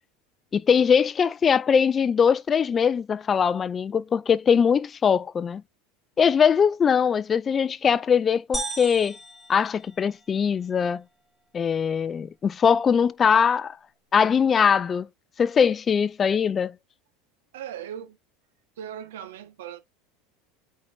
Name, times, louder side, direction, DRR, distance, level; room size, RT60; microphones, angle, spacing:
voice 1, 0.5-5.6 6.2-9.2 9.5-11.0 11.5-13.8 14.1-15.1 15.4-16.7, left 7 dB, 30° left, 0.4 m, -21 dB
sound 1, 8.5-10.5, right 2 dB, ahead, 3.5 m, -35 dB
voice 2, 17.5-18.2 18.8-19.8, right 10 dB, 85° right, 1.5 m, -38 dB
8.3 x 4.5 x 2.7 m
supercardioid pair, 110°, 0 cm